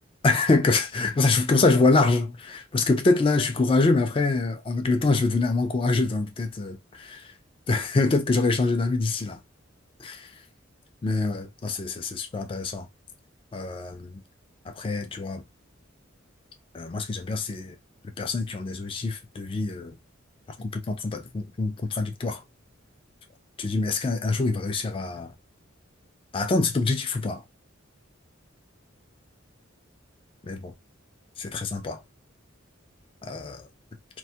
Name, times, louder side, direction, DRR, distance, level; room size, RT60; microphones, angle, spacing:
voice 1, 0.2-7.2 7.7-9.4 10.0-10.3 11.0-12.9 13.5-14.1 14.7-15.4 16.7-17.7 18.2-20.0 20.6-22.4 23.6-25.3 26.3-27.4 30.5-30.7 31.4-32.0 33.2-33.7, left 3 dB, 25° left, 0.3 m, -25 dB
2.2 x 2.1 x 2.7 m
head